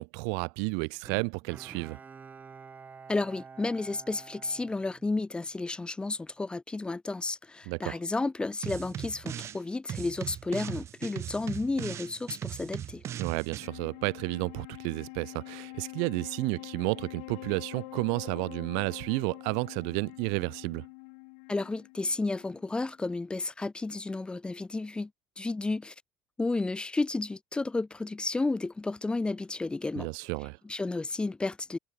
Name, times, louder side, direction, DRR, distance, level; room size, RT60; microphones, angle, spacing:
voice 1, 0.0-2.0 7.7-8.0 13.2-20.8 30.0-30.6, right 40 dB or more, 80° right, 0.9 m, -32 dB
Bowed string instrument, 1.1-5.6 6.0-6.1, right 5 dB, 25° right, 5.8 m, -49 dB
voice 2, 3.1-13.0 21.5-25.1 25.4-25.9 26.4-30.1 30.6-31.8, left 3 dB, 15° left, 6.6 m, -32 dB
sound 1, 8.6-9.6 9.9-13.7, right 10 dB, 45° right, 1.7 m, -38 dB
Wind instrument woodwind instrument, 13.4-22.9, left 40 dB or more, 80° left, 3.8 m, -46 dB
supercardioid pair, 100°, 6 cm